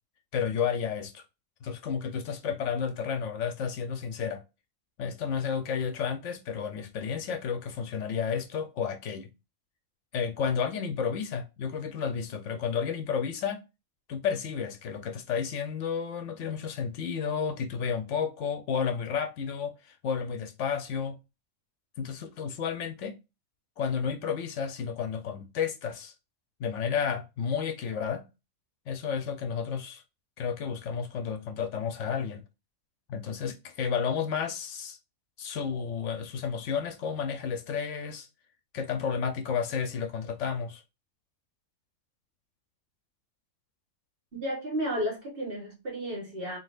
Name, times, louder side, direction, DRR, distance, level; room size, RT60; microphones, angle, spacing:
voice 1, 0.3-1.2 1.6-4.4 5.0-9.3 10.1-13.6 14.1-21.2 22.0-23.2 23.8-26.1 26.6-28.3 28.9-30.0 30.4-32.4 33.1-35.0 35.4-38.3 38.7-40.8, left 7 dB, 70° left, 0.9 m, -31 dB
voice 2, 44.3-46.6, equal, 45° right, 1.7 m, -33 dB
3.8 x 3.8 x 2.5 m
omnidirectional pair, 1.3 m